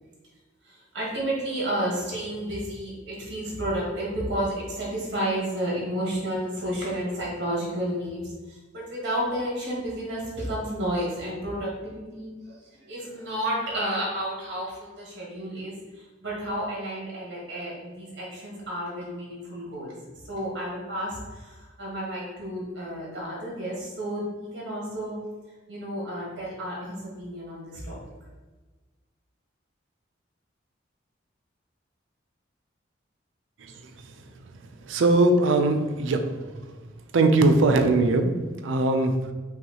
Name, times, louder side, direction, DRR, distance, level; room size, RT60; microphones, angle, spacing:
voice 1, 0.6-12.5 12.8-19.9 20.3-25.1 25.7-28.0, right 1 dB, 60° right, -5 dB, 1.5 m, -31 dB
voice 2, 34.9-36.2 37.1-39.3, right 2 dB, 80° right, 6 dB, 0.4 m, -20 dB
5.6 x 2.3 x 2.9 m, 1.3 s
head